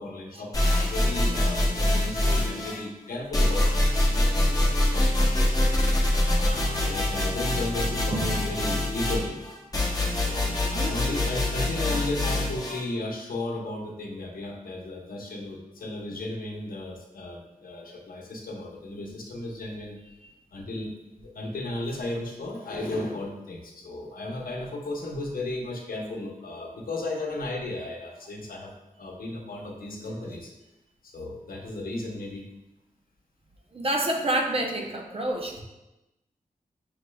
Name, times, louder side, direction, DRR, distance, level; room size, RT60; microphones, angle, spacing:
voice 1, 0.0-5.5 6.2-9.4 10.1-20.0 20.5-28.7 29.0-30.5 31.0-32.4, left 2 dB, 75° left, 0 dB, 0.8 m, -35 dB
sound 1, 0.5-2.8 3.3-12.8, left 1 dB, 25° left, 0.8 m, -24 dB
voice 2, 10.6-11.0 20.2-20.3 30.0-30.4 33.7-35.6, right 1 dB, 40° right, 1 dB, 0.6 m, -29 dB
6.2 x 3.1 x 2.3 m, 0.95 s
wide cardioid pair, 125°, 15 cm